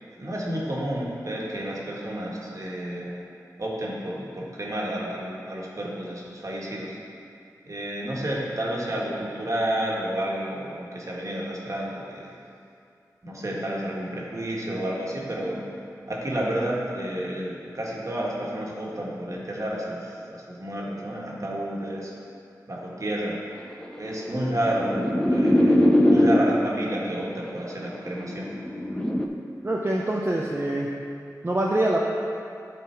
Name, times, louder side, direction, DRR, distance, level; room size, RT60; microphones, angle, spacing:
voice 1, 0.2-3.2 3.6-7.0 7.6-12.4 13.2-15.6 16.1-22.1 22.7-23.3 24.0-28.5, right 1 dB, 50° right, -4 dB, 1.6 m, -30 dB
sound 1, 23.7-26.8 27.7-29.3, left 1 dB, 10° left, 0.7 m, -21 dB
voice 2, 29.6-30.9 31.4-32.0, right 1 dB, 30° right, -2 dB, 0.6 m, -24 dB
10.5 x 4.0 x 4.5 m, 2.5 s
cardioid pair, 50°, 7 cm